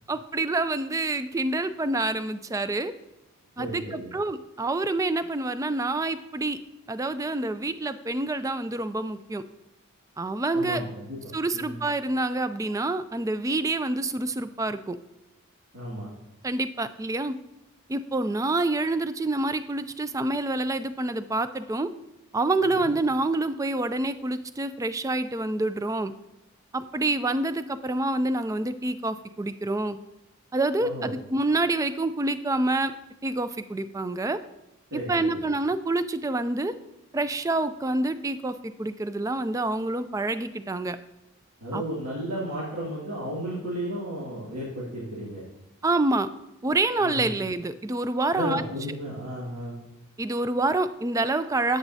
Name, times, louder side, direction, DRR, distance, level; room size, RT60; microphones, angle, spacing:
voice 1, 0.1-2.9 3.6-6.6 6.9-9.4 10.2-10.8 11.3-15.0 16.4-17.4 17.9-21.9 22.3-26.1 26.7-30.0 30.5-32.9 33.2-34.4 34.9-36.7 37.1-41.0 41.7-41.8 45.8-46.3 46.6-48.6 50.2-51.8, right 2 dB, 15° right, 12 dB, 0.3 m, -27 dB
voice 2, 3.6-4.1 10.5-11.2 11.5-11.8 15.7-16.1 22.6-22.9 30.8-31.2 34.9-35.4 41.6-45.4 47.0-47.3 48.3-49.8, equal, 75° right, -7 dB, 2.3 m, -34 dB
10.0 x 8.0 x 2.7 m, 0.93 s
head